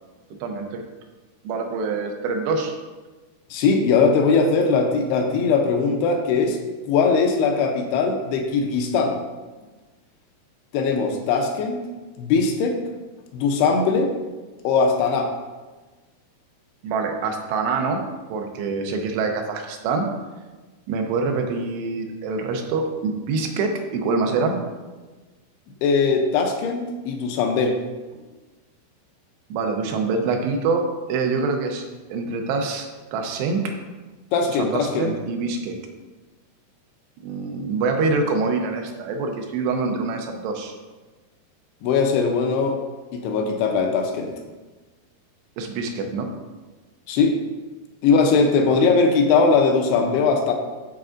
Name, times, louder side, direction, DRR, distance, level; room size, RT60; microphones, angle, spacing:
voice 1, 0.3-0.8 1.4-2.8 16.8-18.0 18.3-20.1 20.9-24.6 28.2-28.3 29.5-31.8 32.1-33.6 34.6-35.8 37.2-40.7 45.6-46.3 48.6-48.8, right 4 dB, 85° right, 3 dB, 2.9 m, -25 dB
voice 2, 3.5-6.6 6.8-9.2 10.7-11.8 12.2-12.8 13.3-14.1 14.6-15.3 25.8-27.8 34.3-35.1 41.8-42.8 43.1-44.4 47.1-47.4 48.0-50.5, left 4 dB, 80° left, 3 dB, 2.6 m, -20 dB
11.5 x 4.6 x 2.5 m, 1.2 s
omnidirectional pair, 4.8 m